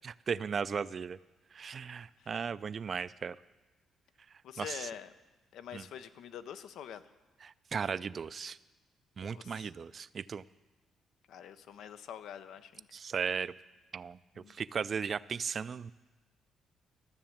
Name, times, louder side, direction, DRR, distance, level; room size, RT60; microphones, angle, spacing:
voice 1, 0.0-1.2 1.5-3.4 4.6-4.9 5.7-5.8 7.4-8.6 9.2-10.4 12.9-13.5 13.9-14.2 14.5-15.9, right 6 dB, 45° right, 18 dB, 0.3 m, -36 dB
voice 2, 4.4-5.1 5.5-7.0 9.3-9.7 11.3-12.9 14.3-14.5, left 9 dB, 80° left, 12 dB, 0.6 m, -45 dB
13.0 x 7.0 x 7.2 m, 1.2 s
cardioid pair, 90°, 0 cm